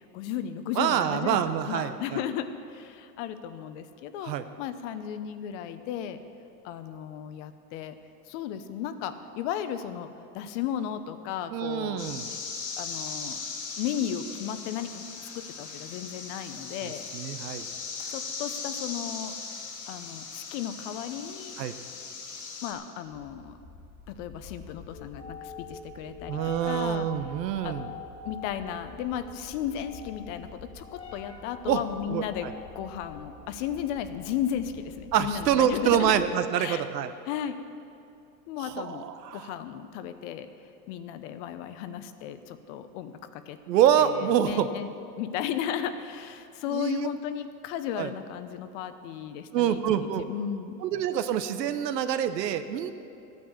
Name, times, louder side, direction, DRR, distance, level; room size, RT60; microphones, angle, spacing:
voice 1, 0.0-4.3 4.6-6.2 6.6-8.0 8.3-10.1 10.3-12.0 12.8-13.4 13.8-17.0 18.1-19.3 19.9-21.6 22.6-23.6 24.1-27.1 27.6-27.7 28.2-36.2 36.6-36.9 37.3-37.6 38.5-39.0 39.3-40.5 40.9-43.6 44.0-50.8, left 9 dB, 50° left, 10 dB, 1.0 m, -35 dB
voice 2, 0.8-2.2 4.2-4.4 11.5-12.3 16.8-17.7 21.6-21.7 26.3-27.9 31.7-31.8 32.1-32.5 35.1-37.1 38.6-39.5 43.7-44.7 46.7-47.1 48.0-48.1 49.5-50.3 50.8-52.9, right 10 dB, 85° right, 10 dB, 1.0 m, -26 dB
sound 1, 12.0-22.7, left 5 dB, 85° left, 2.7 m, -38 dB
sound 2, 23.1-36.4, left 4 dB, 15° left, 1.9 m, -45 dB
14.0 x 9.4 x 7.2 m, 2.6 s
supercardioid pair, 135°, 48 cm